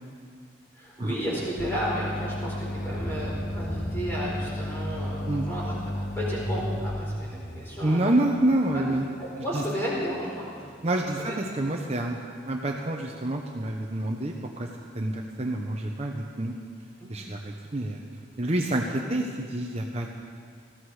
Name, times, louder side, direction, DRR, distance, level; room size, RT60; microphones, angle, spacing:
voice 1, 0.7-8.3 8.7-8.9 9.2-10.6 10.9-11.4 17.0-17.1, equal, 10° left, -6 dB, 4.6 m, -33 dB
sound 1, 1.6-6.9, left 1 dB, 45° left, 1.1 m, -33 dB
sound 2, 2.7-11.6, equal, 10° right, 2.3 m, -40 dB
voice 2, 7.8-9.1 9.5-9.6 10.8-12.2 12.5-14.7 14.9-16.5 17.1-18.0 18.4-20.1, right 1 dB, 35° right, 1 dB, 0.9 m, -27 dB
19.0 x 15.0 x 4.9 m, 2.3 s
head